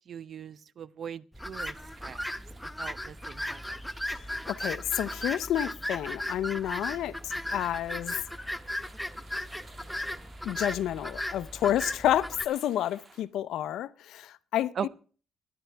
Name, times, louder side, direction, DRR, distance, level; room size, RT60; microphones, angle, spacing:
voice 1, 0.1-1.7 2.0-2.2 2.8-3.8 14.8-14.9, right 7 dB, 55° right, 0.6 m, -39 dB
sound 1, 1.3-12.5, left 1 dB, 5° left, 0.8 m, -36 dB
sound 2, 1.7-13.2, right 3 dB, 30° right, 2.1 m, -56 dB
voice 2, 4.5-8.1 10.4-14.9, left 11 dB, 80° left, 0.6 m, -30 dB
19.5 x 11.0 x 3.4 m
cardioid pair, 90°, 0 cm